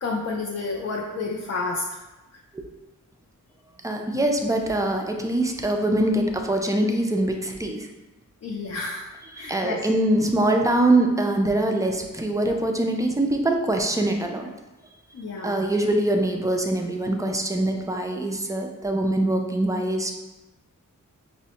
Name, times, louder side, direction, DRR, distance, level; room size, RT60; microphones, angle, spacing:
voice 1, 0.0-1.9 2.3-2.4 8.4-9.1 9.3-9.9 15.1-15.7, left 3 dB, 50° left, -1 dB, 0.4 m, -30 dB
voice 2, 3.8-7.9 9.4-14.5 15.4-20.1, right 1 dB, 10° right, 3 dB, 0.3 m, -23 dB
5.1 x 2.1 x 2.8 m, 1.1 s
wide cardioid pair, 100°, 33 cm